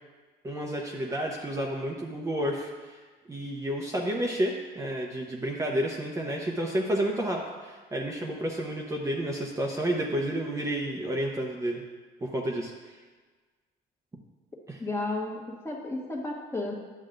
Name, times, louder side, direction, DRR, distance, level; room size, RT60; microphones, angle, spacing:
voice 1, 0.4-3.0 3.3-11.8 12.2-13.0 14.7-14.8, right 1 dB, 20° right, -1 dB, 0.8 m, -30 dB
voice 2, 14.8-16.7, left 2 dB, 15° left, -1 dB, 1.3 m, -33 dB
10.5 x 7.2 x 2.6 m, 1.4 s
cardioid pair, 110°, 17 cm